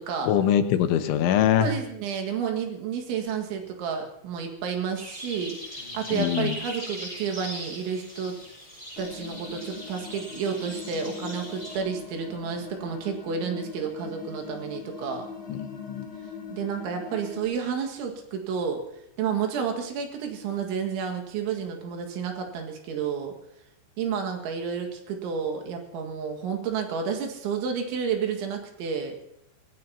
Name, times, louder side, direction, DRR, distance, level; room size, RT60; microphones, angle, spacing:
voice 1, 0.2-1.7 6.1-6.6 15.5-16.1, left 10 dB, 85° left, 8 dB, 3.3 m, -23 dB
voice 2, 1.6-5.6 5.9-8.4 9.0-15.3 16.5-18.8 19.2-23.3 24.0-29.2, right 6 dB, 80° right, 3 dB, 4.1 m, -30 dB
sound 1, 5.0-11.8, left 1 dB, 10° right, 6.4 m, -40 dB
sound 2, 9.0-17.4, left 5 dB, 60° left, 1.3 m, -41 dB
25.0 x 17.0 x 2.8 m, 0.79 s
omnidirectional pair, 5.4 m